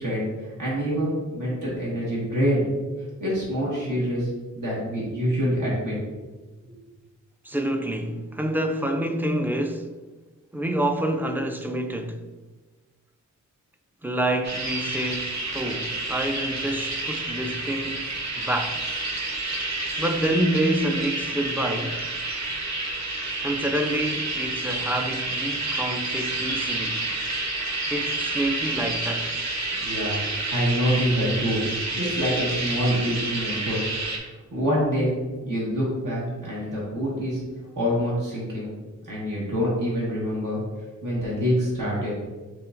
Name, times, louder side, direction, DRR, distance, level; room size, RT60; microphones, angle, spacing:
voice 1, 0.0-2.6 3.2-4.3 4.5-5.9 29.8-31.6 31.9-33.8 34.5-35.1 35.5-37.4 37.7-38.7 39.0-40.6 41.0-42.1, equal, 80° right, 1.5 m, -26 dB
voice 2, 7.4-9.9 10.5-12.2 14.0-18.8 20.0-22.0 23.4-27.0 27.9-29.3, right 1 dB, 5° right, 0.3 m, -27 dB
sound 1, 14.4-34.2, right 2 dB, 60° right, 0.9 m, -29 dB
5.7 x 3.1 x 2.5 m
wide cardioid pair, 100°, 31 cm